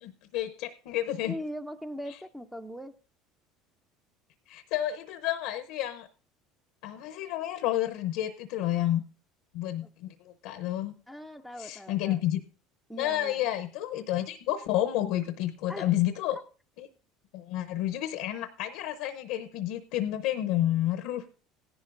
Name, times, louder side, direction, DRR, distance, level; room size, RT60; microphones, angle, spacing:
voice 1, 0.0-1.4 4.5-6.1 6.8-9.0 9.5-10.9 11.6-12.4 13.0-16.4 16.8-16.9 17.3-21.2, left 13 dB, 80° left, 8 dB, 0.7 m, -30 dB
voice 2, 1.2-2.9 11.1-12.2 12.9-13.4 15.7-15.9 16.3-16.4, equal, ahead, 7 dB, 0.5 m, -40 dB
17.0 x 11.0 x 2.5 m, 0.38 s
supercardioid pair, 115°, 0 cm